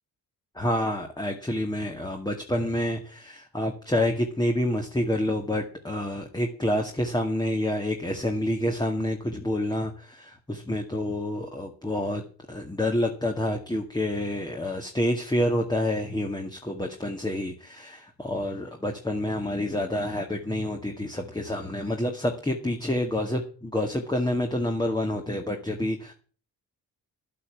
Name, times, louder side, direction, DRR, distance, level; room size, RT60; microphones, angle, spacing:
voice 1, 0.6-26.1, left 1 dB, 10° left, 3 dB, 2.1 m, -28 dB
11.5 x 8.5 x 8.4 m, 0.41 s
cardioid pair, 85°, 38 cm